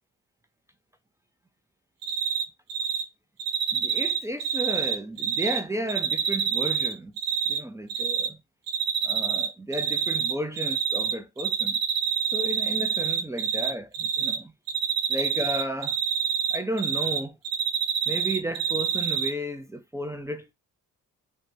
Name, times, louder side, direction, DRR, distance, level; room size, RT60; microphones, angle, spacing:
Cricket, 2.0-2.4 2.7-3.0 3.4-5.6 5.9-7.6 7.9-8.3 8.7-9.5 9.7-11.1 11.4-13.7 13.9-14.4 14.7-17.2 17.4-19.3, right 8 dB, 80° right, 0.7 m, -26 dB
voice 1, 3.7-7.1 7.5-8.4 9.0-11.8 12.3-14.5 15.1-16.0 16.5-17.4 18.1-20.5, right 1 dB, 10° right, 0.3 m, -33 dB
2.7 x 2.1 x 2.6 m
cardioid pair, 70°, 36 cm